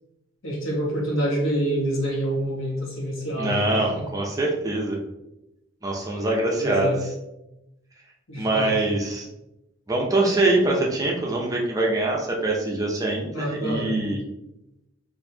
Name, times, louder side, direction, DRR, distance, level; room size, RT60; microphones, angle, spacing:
voice 1, 0.4-4.1 6.6-7.0 8.3-8.7 13.3-14.0, right 1 dB, 80° left, -3 dB, 1.1 m, -27 dB
voice 2, 3.4-5.0 5.8-6.9 8.4-9.3 9.9-14.2, right 2 dB, 15° right, -1 dB, 0.5 m, -24 dB
4.3 x 2.6 x 2.7 m, 0.91 s
head